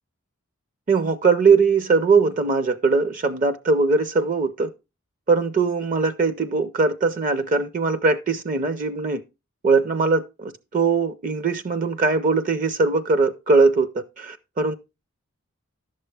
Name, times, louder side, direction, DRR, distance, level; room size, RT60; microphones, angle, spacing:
voice 1, 0.9-4.7 5.3-9.2 9.6-14.8, right 4 dB, 40° right, 0.5 m, -21 dB
11.5 x 6.6 x 3.3 m
head